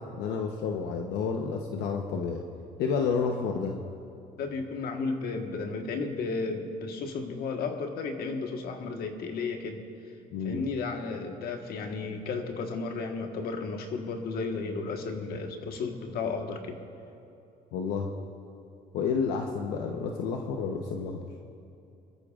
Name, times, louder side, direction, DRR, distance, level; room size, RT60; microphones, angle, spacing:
voice 1, 0.2-2.4 2.8-3.8 10.3-10.6 17.7-18.1 18.9-21.2, left 5 dB, 85° left, 2 dB, 0.9 m, -30 dB
voice 2, 4.4-9.8 10.4-16.8, left 4 dB, 65° left, 4 dB, 1.4 m, -33 dB
24.5 x 13.5 x 2.5 m, 2.7 s
cardioid pair, 110°, 17 cm